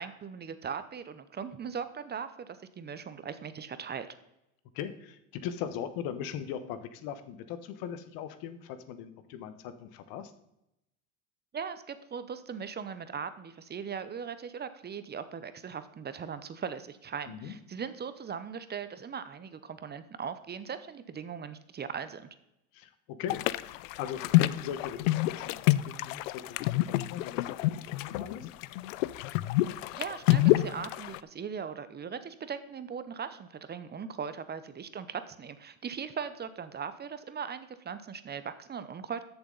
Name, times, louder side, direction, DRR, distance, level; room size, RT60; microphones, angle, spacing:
voice 1, 0.0-4.1 11.5-22.3 29.9-39.2, right 6 dB, 25° right, 12 dB, 0.8 m, -39 dB
voice 2, 4.7-10.3 17.3-17.5 22.7-28.5, left 9 dB, 65° left, 12 dB, 1.3 m, -40 dB
sound 1, 23.3-31.2, left 16 dB, 85° left, 0.5 m, -28 dB
13.5 x 7.0 x 4.0 m, 0.85 s
supercardioid pair, 100°, 38 cm